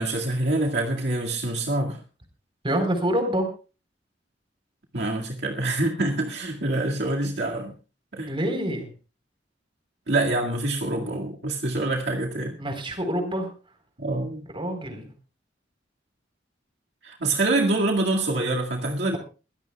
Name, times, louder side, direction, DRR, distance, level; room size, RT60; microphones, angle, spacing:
voice 1, 0.0-2.0 4.9-7.7 8.1-8.3 10.1-12.6 14.0-14.5 17.0-19.2, right 2 dB, 65° right, 0 dB, 2.1 m, -26 dB
voice 2, 2.6-3.5 8.2-8.9 12.6-13.5 14.5-15.1, equal, 30° right, 6 dB, 4.0 m, -26 dB
23.0 x 17.0 x 2.3 m, 0.34 s
head